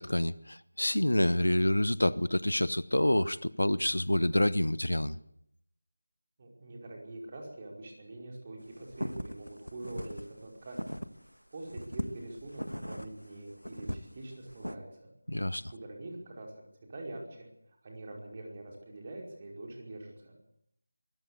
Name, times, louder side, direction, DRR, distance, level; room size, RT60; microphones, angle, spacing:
voice 1, 0.0-5.2 15.3-15.6, left 1 dB, 70° left, 0.8 m, -27 dB
voice 2, 6.4-10.8 11.5-15.1 15.7-16.5 16.9-17.5 17.8-20.4, right 2 dB, 25° right, 5.0 m, -44 dB
sound 1, 8.7-11.3 11.7-14.8, equal, 90° left, 1.6 m, -39 dB
23.5 x 14.5 x 8.3 m
figure-of-eight pair, 165°, 0 cm